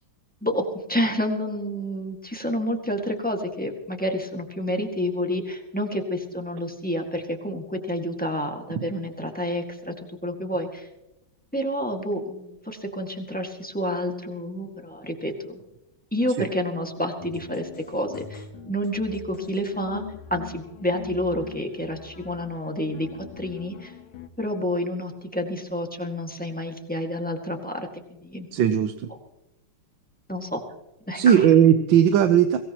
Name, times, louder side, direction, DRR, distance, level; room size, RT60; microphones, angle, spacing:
voice 1, 0.4-9.9 10.2-10.9 11.5-15.6 16.1-20.0 20.3-23.1 23.4-23.9 24.4-28.5 30.3-30.6 31.1-31.5, equal, 5° left, 2 dB, 1.7 m, -29 dB
sound 1, 17.2-24.3, left 9 dB, 90° left, 2.0 m, -42 dB
voice 2, 28.5-29.1 31.1-32.6, right 9 dB, 70° right, 8 dB, 1.5 m, -17 dB
23.0 x 18.0 x 3.0 m, 0.93 s
omnidirectional pair, 2.2 m